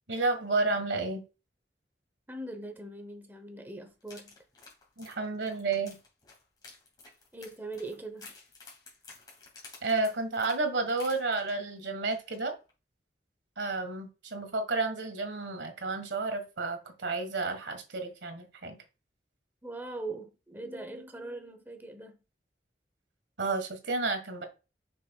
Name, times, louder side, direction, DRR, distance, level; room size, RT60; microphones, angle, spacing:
voice 1, 0.1-1.2 5.0-6.0 9.8-12.5 13.6-18.8 23.4-24.5, right 3 dB, 90° right, 1.6 m, -31 dB
voice 2, 2.3-4.3 7.3-8.3 19.6-22.2, right 2 dB, 10° right, 1.0 m, -41 dB
sound 1, 4.0-11.8 12.1-12.4 12.7-12.8, left 3 dB, 25° left, 2.8 m, -52 dB
7.0 x 6.1 x 2.4 m
head